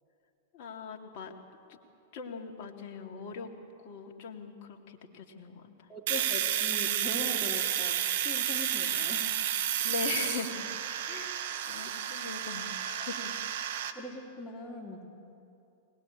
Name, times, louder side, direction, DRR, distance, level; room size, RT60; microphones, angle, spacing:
voice 1, 0.5-1.3 1.7-1.8 2.1-3.5 3.8-5.9 9.8-10.6 11.1-13.3, left 5 dB, 50° left, 2 dB, 2.5 m, -40 dB
voice 2, 5.9-9.3 13.0-13.1 13.9-15.1, left 2 dB, 20° left, -6 dB, 3.2 m, -41 dB
Domestic sounds home sounds, 6.1-13.9, right 11 dB, 55° right, 1.6 m, -31 dB
23.5 x 19.0 x 8.6 m, 2.6 s
figure-of-eight pair, 95°, 0 cm